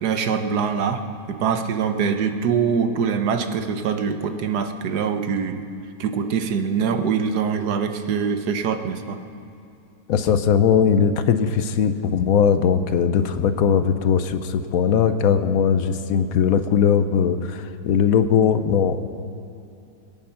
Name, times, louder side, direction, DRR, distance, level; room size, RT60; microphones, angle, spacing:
voice 1, 0.0-5.6 6.0-9.2, right 6 dB, 90° right, 8 dB, 1.5 m, -24 dB
voice 2, 10.1-19.0, left 7 dB, 70° left, 10 dB, 1.1 m, -19 dB
22.0 x 9.6 x 5.7 m, 2.6 s
omnidirectional pair, 1.7 m